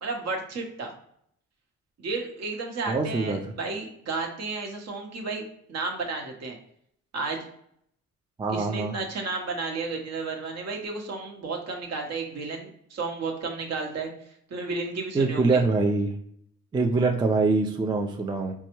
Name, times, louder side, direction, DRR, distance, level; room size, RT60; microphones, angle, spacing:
voice 1, 0.0-0.9 2.0-6.6 7.1-7.5 8.5-14.1 14.5-15.6, right 3 dB, 60° right, 2 dB, 1.0 m, -32 dB
voice 2, 2.9-3.4 8.4-8.9 15.1-16.1 16.7-18.5, right 3 dB, 15° right, 3 dB, 0.4 m, -24 dB
4.1 x 2.3 x 3.0 m, 0.69 s
cardioid pair, 90°, 30 cm